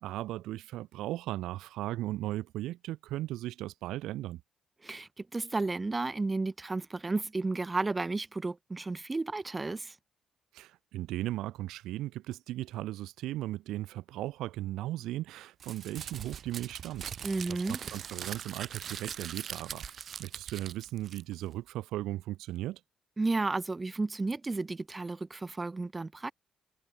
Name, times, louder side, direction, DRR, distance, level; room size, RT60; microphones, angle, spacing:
voice 1, 0.0-4.4 10.5-19.9 20.2-22.8, right 15 dB, 85° right, 2.2 m, -37 dB
voice 2, 4.8-10.0 17.2-17.8 23.2-26.3, right 3 dB, 25° right, 2.4 m, -32 dB
Crumpling crinkling, 15.6-21.5, right 8 dB, 65° right, 7.0 m, -41 dB
supercardioid pair, 55°, 0 cm